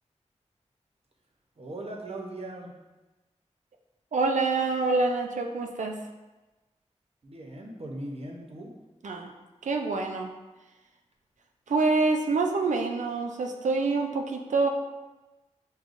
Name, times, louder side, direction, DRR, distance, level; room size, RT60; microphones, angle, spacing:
voice 1, 1.6-2.7 7.2-8.7, right 1 dB, 55° right, -1 dB, 0.8 m, -39 dB
voice 2, 4.1-6.0 9.0-9.3 9.6-10.3 11.7-14.7, right 3 dB, 85° right, 3 dB, 0.4 m, -26 dB
6.3 x 2.3 x 2.5 m, 1.1 s
wide cardioid pair, 55°, 12 cm